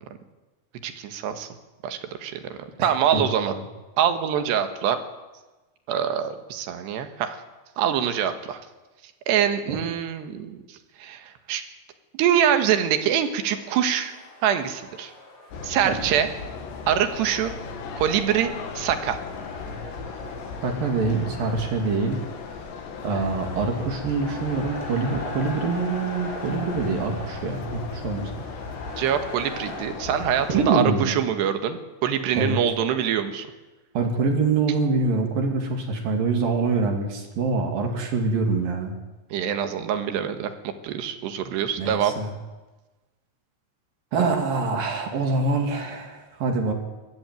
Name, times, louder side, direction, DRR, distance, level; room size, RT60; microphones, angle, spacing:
voice 1, 0.8-1.5 1.8-3.5 4.0-5.0 5.9-7.4 7.8-8.6 9.3-10.6 11.0-11.6 12.1-14.1 14.4-15.1 15.6-16.3 16.9-17.5 18.0-19.2 29.0-33.5 39.3-40.5 40.8-42.1, right 9 dB, 70° right, 8 dB, 3.3 m, -24 dB
voice 2, 2.8-3.6 15.8-16.0 20.6-22.2 23.0-28.3 30.5-31.1 32.4-32.6 34.0-38.9 41.8-42.3 44.1-46.7, right 4 dB, 55° right, 3 dB, 3.7 m, -25 dB
sound 1, 13.4-29.9, left 1 dB, 30° left, 7.7 m, -42 dB
sound 2, 15.5-30.7, left 5 dB, 70° left, 4.1 m, -36 dB
21.0 x 14.0 x 9.2 m, 1.2 s
omnidirectional pair, 5.4 m